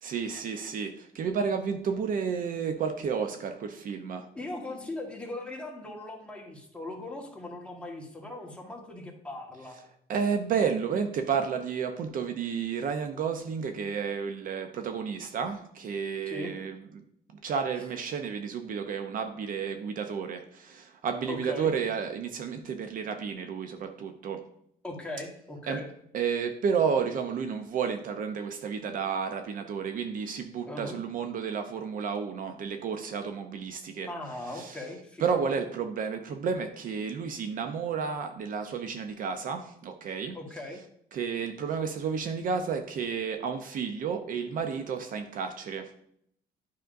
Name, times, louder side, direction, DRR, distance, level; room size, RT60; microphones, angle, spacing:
voice 1, 0.0-4.3 10.1-16.8 17.4-24.4 25.7-25.8 26.1-34.1 34.5-34.8 35.2-40.4 41.1-45.9, right 6 dB, 55° right, 7 dB, 0.6 m, -31 dB
voice 2, 4.3-9.8 16.3-16.5 21.3-21.7 24.8-25.9 30.6-31.0 34.1-35.6 40.3-40.8, left 2 dB, 5° left, -1 dB, 1.4 m, -39 dB
9.2 x 5.1 x 2.6 m, 0.70 s
cardioid pair, 110°, 17 cm